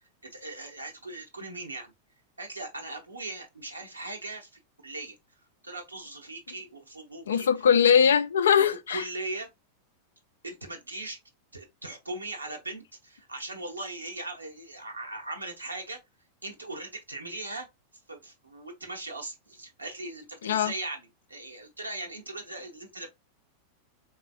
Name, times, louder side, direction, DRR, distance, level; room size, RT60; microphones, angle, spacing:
voice 1, 0.2-1.9 2.4-5.1 5.6-7.5 8.9-9.5 10.4-11.2 11.5-16.0 16.4-17.7 18.1-23.1, right 2 dB, 80° right, 1.1 m, -39 dB
voice 2, 7.3-9.0 20.4-20.7, left 7 dB, 65° left, 0.4 m, -21 dB
4.0 x 3.0 x 2.4 m
figure-of-eight pair, 90°, 0 cm